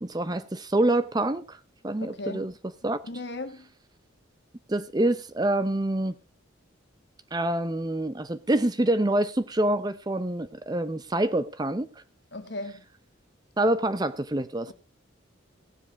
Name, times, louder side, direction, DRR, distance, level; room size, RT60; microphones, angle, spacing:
voice 1, 0.0-1.6 1.8-2.5 2.8-3.0 4.7-6.2 7.3-11.9 13.6-14.7, right 1 dB, 20° right, 0.6 m, -26 dB
voice 2, 2.0-2.5 3.1-3.7 12.3-12.8 14.7-14.8, left 2 dB, 55° left, 1.6 m, -36 dB
17.0 x 7.6 x 4.1 m
head